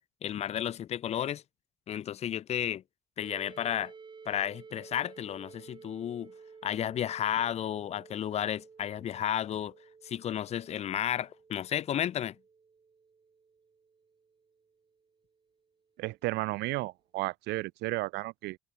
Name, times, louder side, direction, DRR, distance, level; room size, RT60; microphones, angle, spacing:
voice 1, 0.2-1.4 1.9-2.8 3.2-3.9 4.3-6.3 6.6-9.7 10.0-12.3, left 10 dB, 40° left, 0.4 m, -32 dB
sound 1, 3.2-14.9, right 5 dB, 25° right, 1.9 m, -53 dB
voice 2, 16.0-18.6, right 20 dB, 90° right, 1.0 m, -33 dB
cardioid pair, 110°, 17 cm